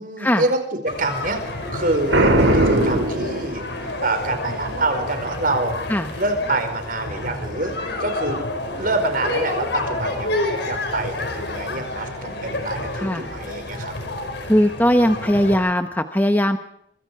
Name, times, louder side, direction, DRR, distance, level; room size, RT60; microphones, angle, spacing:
voice 1, 0.0-1.4 1.7-3.6 4.0-5.8 6.2-8.5 8.8-13.9, right 2 dB, 45° right, 6 dB, 4.8 m, -26 dB
sound 1, 0.9-15.6, left 2 dB, 60° left, 5.7 m, -29 dB
Boom, 2.1-4.0, right 1 dB, 75° right, 5.5 m, -18 dB
voice 2, 13.0-13.3 14.5-16.6, equal, 10° left, 7 dB, 0.9 m, -19 dB
24.5 x 24.5 x 4.8 m, 0.74 s
head